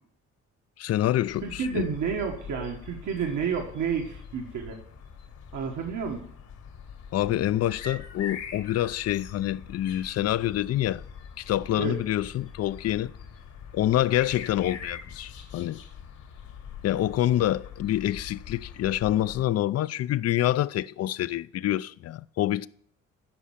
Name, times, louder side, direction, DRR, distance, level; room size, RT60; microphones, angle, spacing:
voice 1, 0.8-1.9 7.1-11.0 11.4-13.1 13.7-15.8 16.8-22.7, left 13 dB, 55° left, 0.5 m, -26 dB
sound 1, 1.3-19.4, left 6 dB, 80° left, 2.5 m, -43 dB
voice 2, 1.4-4.8 5.5-6.2 11.8-12.0, right 6 dB, 75° right, 1.6 m, -30 dB
12.0 x 5.4 x 7.4 m
cardioid pair, 90°, 30 cm